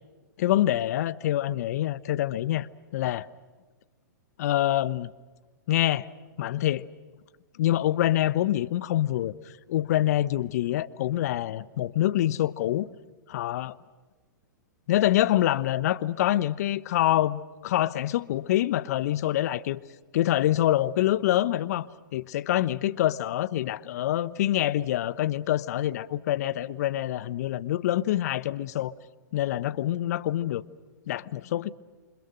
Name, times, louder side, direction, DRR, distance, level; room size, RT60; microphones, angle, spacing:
voice 1, 0.4-2.7 2.9-3.3 4.4-5.1 5.7-6.1 6.4-6.9 7.6-9.3 9.7-12.9 13.3-13.8 14.9-19.8 20.1-28.9 29.3-30.6 31.1-31.7, left 13 dB, 55° left, 1.0 m, -26 dB
28.5 x 26.5 x 6.4 m
hypercardioid pair, 115°, 10 cm